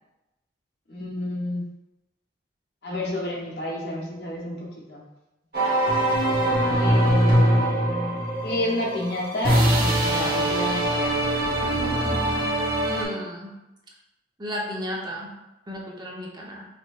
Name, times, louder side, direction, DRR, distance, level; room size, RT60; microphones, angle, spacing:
voice 1, 0.9-1.7 2.8-5.0 6.7-7.4 8.4-11.2, left 1 dB, 65° left, -2 dB, 1.0 m, -30 dB
sound 1, 5.5-13.0, right 1 dB, 55° right, 1.2 m, -22 dB
voice 2, 12.8-13.5 14.4-15.3 15.7-16.7, equal, 25° right, -2 dB, 0.7 m, -33 dB
5.1 x 3.1 x 2.4 m, 0.97 s
head